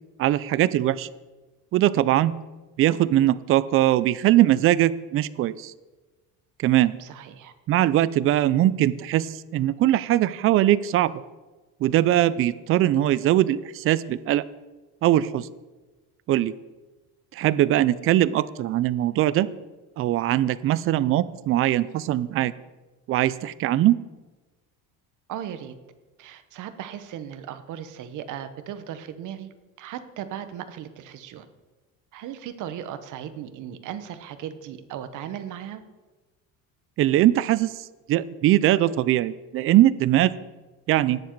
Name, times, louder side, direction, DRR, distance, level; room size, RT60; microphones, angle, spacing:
voice 1, 0.2-1.1 1.7-2.3 2.8-5.7 6.6-6.9 7.7-11.1 11.8-14.4 15.0-15.5 16.3-16.5 17.3-19.5 20.0-22.5 23.1-24.0 37.0-37.7 38.1-40.3 40.9-41.2, right 13 dB, 40° right, 17 dB, 0.4 m, -21 dB
voice 2, 6.9-7.5 25.3-25.7 26.2-29.5 29.8-31.5 32.1-35.8, right 10 dB, 55° right, 10 dB, 1.1 m, -37 dB
18.0 x 7.2 x 4.6 m, 1.2 s
cardioid pair, 160°, 35 cm